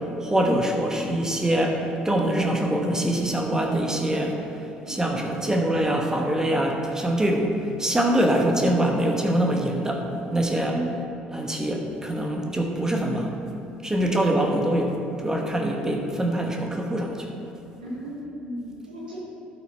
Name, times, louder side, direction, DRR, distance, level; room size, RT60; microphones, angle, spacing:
voice 1, 0.2-4.5 4.9-10.8 11.3-13.4 13.8-17.3, right 1 dB, 10° right, 2 dB, 1.1 m, -24 dB
voice 2, 14.0-14.5 17.8-19.2, right 1 dB, 75° right, -6 dB, 2.0 m, -34 dB
12.0 x 5.8 x 4.5 m, 2.8 s
figure-of-eight pair, 55°, 5 cm